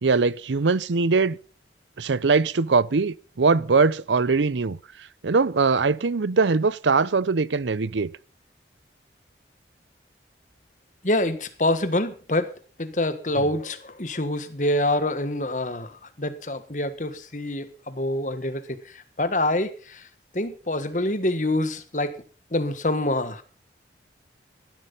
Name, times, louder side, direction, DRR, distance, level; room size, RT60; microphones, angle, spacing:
voice 1, 0.0-1.4 2.0-8.1 13.4-13.5, right 4 dB, 90° right, 0.7 m, -22 dB
voice 2, 11.0-12.5 12.8-20.0 20.3-22.2 22.5-23.4, left 1 dB, 45° left, 1.6 m, -26 dB
16.5 x 12.0 x 5.5 m
head